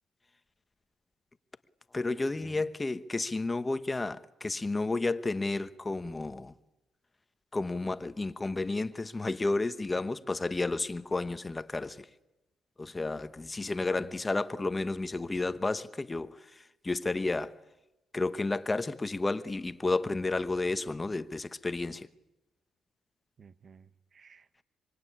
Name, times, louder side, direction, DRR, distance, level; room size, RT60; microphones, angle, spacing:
voice 1, 1.9-6.5 7.5-12.1 12.8-16.4 16.8-17.6 18.1-22.1, left 3 dB, 20° left, 1.1 m, -31 dB
voice 2, 23.4-24.6, right 6 dB, 45° right, 1.2 m, -55 dB
25.0 x 23.5 x 9.9 m
cardioid pair, 90°, 0 cm